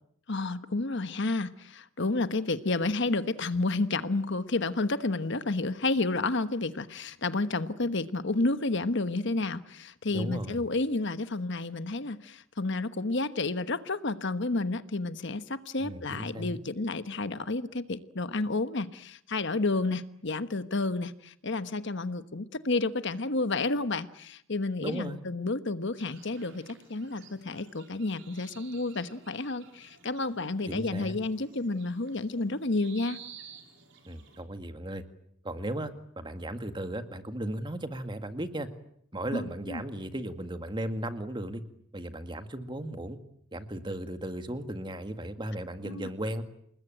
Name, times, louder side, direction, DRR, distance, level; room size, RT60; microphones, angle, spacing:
voice 1, 0.3-33.2 39.3-39.8 45.8-46.1, left 2 dB, 60° left, 12 dB, 1.3 m, -30 dB
voice 2, 10.1-10.6 15.8-16.6 24.8-25.2 30.7-31.1 34.1-35.0 35.4-38.7 39.1-41.6 41.9-43.2 43.5-46.4, right 1 dB, 20° right, 8 dB, 2.0 m, -36 dB
sound 1, 25.9-34.4, right 7 dB, 60° right, 4.8 m, -53 dB
29.0 x 20.5 x 9.1 m, 0.70 s
head